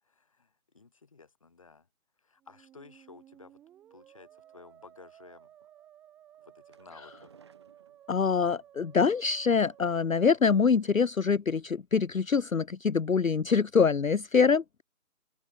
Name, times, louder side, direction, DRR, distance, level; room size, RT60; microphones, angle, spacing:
voice 1, 0.0-1.9 2.2-3.6 3.9-5.5 6.4-7.3, left 4 dB, 20° left, 5.2 m, -54 dB
Musical instrument, 2.4-11.2, right 11 dB, 5° right, 6.4 m, -57 dB
sound 1, 6.4-8.5 9.5-10.4 10.8-11.2 11.5-11.6 12.0-12.1, right 5 dB, 20° right, 6.7 m, -62 dB
voice 2, 8.1-14.6, left 5 dB, 60° left, 0.8 m, -25 dB
open air
figure-of-eight pair, 180°, 45 cm